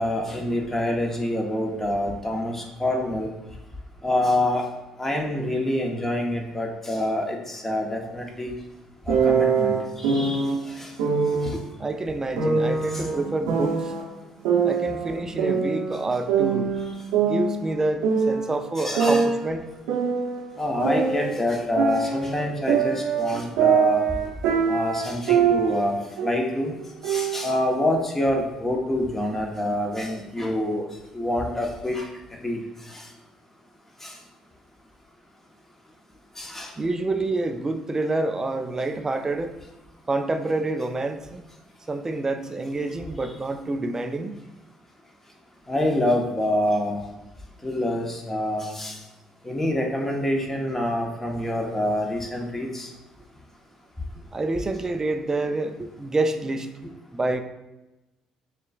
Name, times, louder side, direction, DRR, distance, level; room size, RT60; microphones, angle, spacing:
voice 1, 0.0-3.3 4.0-4.7 5.0-8.5 9.1-10.9 11.3-11.6 12.9-13.1 16.8-16.9 18.8-19.2 20.6-24.0 24.6-26.0 26.2-26.7 27.0-30.8 31.1-32.1 32.4-32.6 32.9-33.1 34.0-34.2 36.4-36.7 45.7-47.0 47.6-49.0 49.4-52.9 56.8-56.9, left 1 dB, 15° left, 1 dB, 1.0 m, -26 dB
sound 1, 9.1-10.5 11.0-11.5 12.4-14.0 14.5-16.0 16.3-18.5 19.0-21.4 21.8-25.9 26.2-26.5 27.0-28.0, right 6 dB, 75° right, 0.9 m, -23 dB
voice 2, 11.8-13.9 14.6-16.7 17.2-19.6 36.8-39.5 40.1-41.5 41.9-44.3 54.3-56.7 57.1-57.4, right 2 dB, 25° right, 7 dB, 0.5 m, -27 dB
6.4 x 2.4 x 2.4 m, 0.98 s
hypercardioid pair, 50°, 2 cm